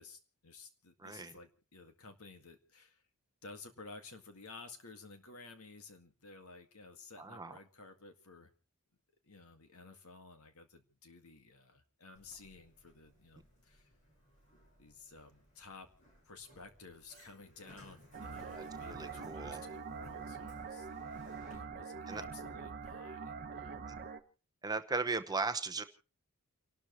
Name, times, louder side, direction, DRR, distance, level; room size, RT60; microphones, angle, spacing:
voice 1, 0.0-3.0 3.4-8.5 9.2-13.9 14.8-15.9 16.3-20.9 21.5-23.8, left 3 dB, 75° left, 6 dB, 2.0 m, -54 dB
voice 2, 1.0-1.3 7.2-7.6 18.5-19.6 22.1-22.2 23.9-24.0 24.6-25.8, right 3 dB, 20° right, 9 dB, 0.9 m, -37 dB
Sliding door, 12.1-21.5, equal, 35° left, 7.3 m, -61 dB
sound 1, 18.1-24.2, right 5 dB, 45° right, 1.0 m, -44 dB
29.5 x 12.5 x 3.1 m, 0.36 s
head